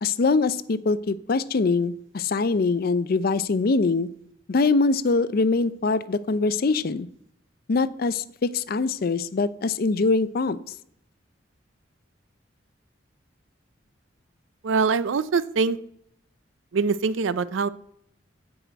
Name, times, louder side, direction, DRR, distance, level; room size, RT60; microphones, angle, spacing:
voice 1, 0.0-4.1 4.5-7.1 7.7-10.6, left 3 dB, 50° left, 15 dB, 0.5 m, -23 dB
voice 2, 14.6-15.8 16.7-17.7, right 4 dB, 85° right, 16 dB, 0.5 m, -23 dB
9.8 x 4.9 x 8.0 m, 0.74 s
head